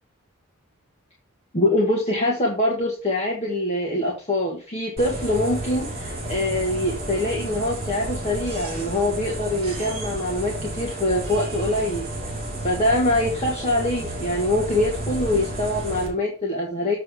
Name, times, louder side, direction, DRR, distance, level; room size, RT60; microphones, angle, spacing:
voice 1, 1.5-12.1 12.6-17.0, left 1 dB, 30° left, -3 dB, 1.7 m, -24 dB
sound 1, 5.0-16.1, right 1 dB, 30° right, 3.4 m, -31 dB
7.6 x 6.7 x 3.6 m, 0.34 s
head